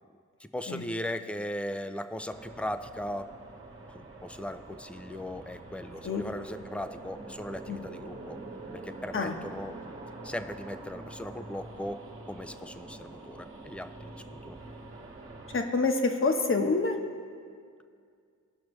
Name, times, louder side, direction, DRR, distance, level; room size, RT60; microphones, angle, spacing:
voice 1, 0.4-3.3 3.9-8.4 8.7-9.8 10.2-14.6, left 1 dB, 5° left, 10 dB, 0.5 m, -38 dB
Zombie Breakout Soundscape, 2.3-15.6, right 2 dB, 40° right, 1.4 m, -45 dB
voice 2, 15.5-17.0, left 3 dB, 40° left, 4 dB, 1.1 m, -27 dB
17.5 x 6.0 x 3.1 m, 2.2 s
cardioid pair, 60°, 33 cm